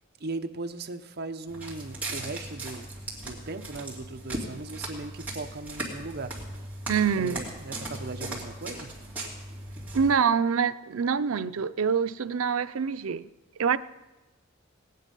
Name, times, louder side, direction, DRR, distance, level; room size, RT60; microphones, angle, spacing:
voice 1, 0.2-2.9 3.2-6.3 7.2-8.9, right 3 dB, 50° right, 7 dB, 0.8 m, -38 dB
Walk footsteps, 1.5-10.2, right 1 dB, 10° right, 2.7 m, -38 dB
voice 2, 6.9-7.4 9.9-13.3 13.6-13.8, right 6 dB, 90° right, 12 dB, 0.5 m, -25 dB
18.0 x 9.4 x 5.4 m, 1.1 s
head